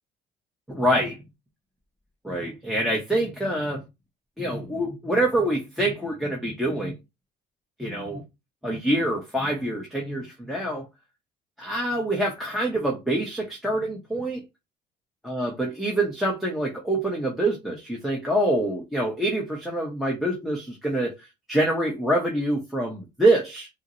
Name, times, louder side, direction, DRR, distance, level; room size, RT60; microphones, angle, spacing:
voice 1, 0.7-1.2 2.2-3.8 4.4-6.9 7.8-8.2 8.6-10.9 11.6-14.4 15.3-21.1 21.5-23.7, right 1 dB, ahead, 0.8 m, -25 dB
4.0 x 2.0 x 2.5 m
cardioid pair, 110°, 17 cm